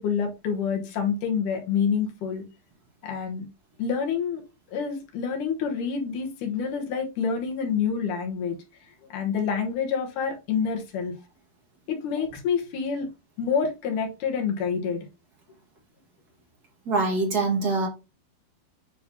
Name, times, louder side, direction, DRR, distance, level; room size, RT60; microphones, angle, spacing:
voice 1, 0.0-2.4 3.0-3.5 3.8-4.4 4.7-8.6 9.1-11.1 11.9-13.1 13.4-15.1, left 6 dB, 70° left, 3 dB, 2.4 m, -27 dB
voice 2, 16.8-17.9, right 3 dB, 40° right, 0 dB, 1.5 m, -24 dB
9.7 x 4.0 x 2.7 m, 0.27 s
omnidirectional pair, 4.3 m